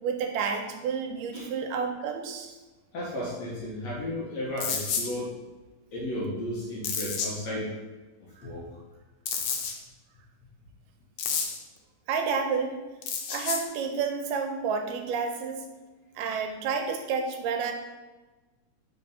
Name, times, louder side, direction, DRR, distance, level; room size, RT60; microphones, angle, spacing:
voice 1, 0.0-2.6 8.4-8.5 12.1-12.8 13.3-15.6 16.2-17.7, right 5 dB, 85° right, 5 dB, 2.2 m, -30 dB
voice 2, 2.9-5.4 5.9-7.7 8.2-8.6, left 1 dB, 65° left, -4 dB, 2.0 m, -34 dB
sound 1, 4.6-5.1 6.8-7.3 9.3-9.7 11.2-11.6 13.0-13.6, left 6 dB, 80° left, 2.3 m, -30 dB
5.1 x 3.4 x 5.4 m, 1.2 s
omnidirectional pair, 3.8 m